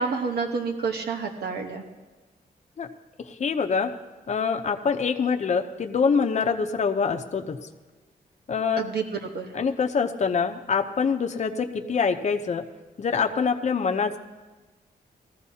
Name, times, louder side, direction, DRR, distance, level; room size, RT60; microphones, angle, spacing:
voice 1, 0.0-1.8 8.8-9.5, right 5 dB, 80° right, 4 dB, 1.1 m, -29 dB
voice 2, 3.2-3.9 4.3-7.6 8.5-8.8 9.5-12.7 13.0-14.2, left 5 dB, 45° left, 4 dB, 0.7 m, -25 dB
20.0 x 14.0 x 2.8 m, 1.2 s
wide cardioid pair, 140°, 17 cm